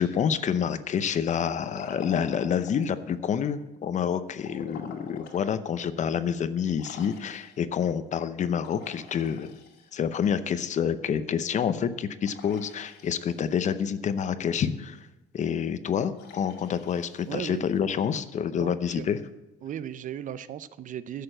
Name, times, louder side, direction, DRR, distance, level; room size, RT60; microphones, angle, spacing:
voice 1, 0.0-9.5 9.9-15.1 15.3-19.2, left 7 dB, 45° left, 12 dB, 0.7 m, -28 dB
Liquid, 1.3-2.9 4.4-5.4 5.9-6.0 6.8-7.7 8.6-10.2 12.2-13.6 16.1-17.8, left 5 dB, 85° left, 2.3 m, -47 dB
voice 2, 17.3-17.7 18.6-19.1 19.6-21.2, right 10 dB, 50° right, 15 dB, 0.6 m, -36 dB
11.0 x 6.8 x 7.8 m, 1.0 s
cardioid pair, 110°, 17 cm